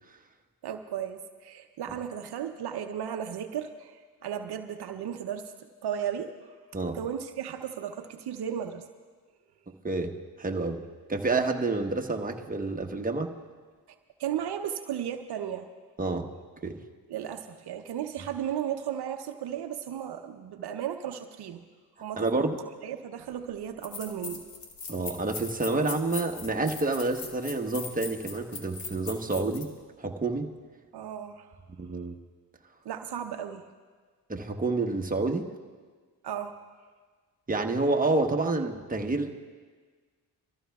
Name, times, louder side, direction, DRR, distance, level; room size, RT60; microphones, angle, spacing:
voice 1, 0.6-5.5 5.8-6.5 6.9-8.8 14.2-15.7 17.1-21.6 22.0-22.5 22.8-24.5 30.9-31.5 32.8-33.7 36.2-36.6, right 9 dB, 70° right, 6 dB, 0.7 m, -35 dB
voice 2, 10.4-10.8 11.1-13.3 16.0-16.3 16.6-16.8 22.2-22.6 24.9-29.7 30.0-30.5 31.8-32.2 34.3-35.5 37.5-39.4, right 3 dB, 20° right, 3 dB, 1.1 m, -28 dB
sound 1, 23.3-23.4 23.8-29.7, left 5 dB, 85° left, 1.6 m, -40 dB
24.5 x 14.0 x 2.3 m, 1.5 s
supercardioid pair, 55°, 40 cm